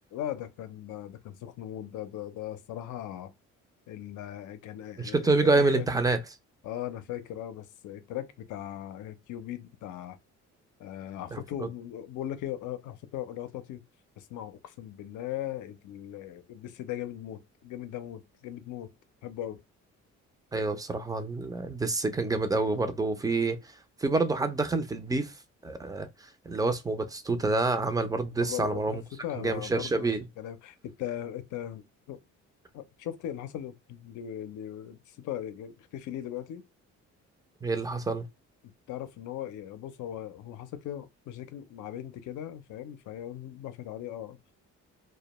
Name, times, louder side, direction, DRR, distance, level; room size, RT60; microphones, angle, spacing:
voice 1, 0.1-3.3 3.9-5.9 6.6-10.2 10.8-13.8 14.2-18.9 19.2-19.6 28.4-30.1 30.4-32.2 32.7-36.6 38.9-44.4, left 11 dB, 80° left, 0.5 m, -39 dB
voice 2, 5.0-6.2 11.3-11.7 20.5-29.0 29.4-30.2 37.6-38.3, right 3 dB, 10° right, 0.4 m, -28 dB
2.2 x 2.2 x 2.9 m
cardioid pair, 90°, 30 cm